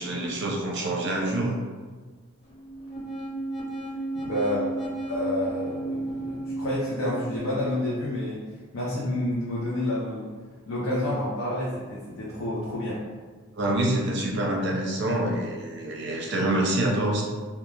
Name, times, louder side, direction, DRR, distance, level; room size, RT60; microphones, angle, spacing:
voice 1, 0.0-1.5 13.6-17.2, right 1 dB, 55° right, -1 dB, 0.5 m, -26 dB
sound 1, 2.4-7.6, right 2 dB, 50° left, 1.0 m, -33 dB
voice 2, 4.2-4.6 5.1-8.4 8.7-10.3 10.7-13.0, left 1 dB, 90° left, -7 dB, 0.6 m, -29 dB
2.3 x 2.3 x 3.1 m, 1.4 s
head